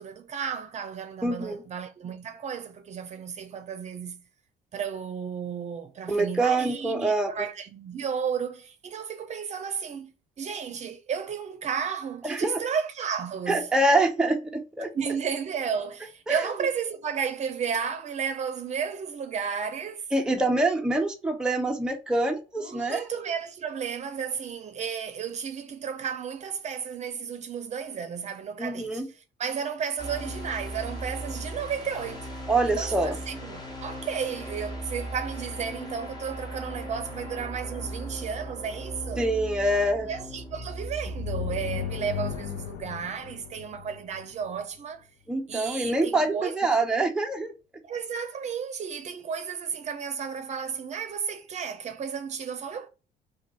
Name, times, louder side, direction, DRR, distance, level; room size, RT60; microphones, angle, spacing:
voice 1, 0.0-4.2 4.7-10.1 10.4-13.7 14.9-20.1 22.6-32.3 32.6-39.3 39.9-45.1 45.5-46.9 47.8-52.9, right 7 dB, 45° right, 0.6 m, -33 dB
voice 2, 1.2-1.6 6.1-7.3 12.2-12.6 13.5-14.9 16.3-16.5 20.1-23.0 28.6-29.1 32.5-33.2 39.2-40.1 45.3-47.5, right 2 dB, 5° right, 0.6 m, -25 dB
sound 1, 30.0-42.0, right 1 dB, 25° left, 1.3 m, -37 dB
sound 2, 41.0-44.6, left 10 dB, 75° left, 0.5 m, -35 dB
2.6 x 2.6 x 4.2 m
cardioid pair, 110°, 17 cm